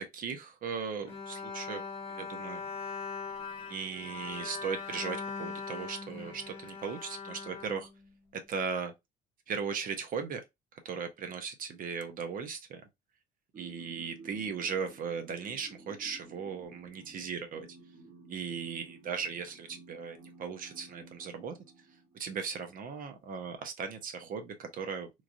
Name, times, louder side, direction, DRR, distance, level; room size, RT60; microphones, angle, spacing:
voice 1, 0.0-1.8 2.1-2.6 3.7-7.9 8.5-8.9 9.5-10.4 10.8-12.8 13.6-17.7 18.3-21.6 22.1-25.1, right 6 dB, 55° right, 0.7 m, -37 dB
Bowed string instrument, 1.1-8.4, left 5 dB, 35° left, 1.1 m, -41 dB
sound 1, 13.5-22.3, right 3 dB, 35° right, 1.2 m, -54 dB
3.1 x 2.4 x 2.5 m
cardioid pair, 110°, 17 cm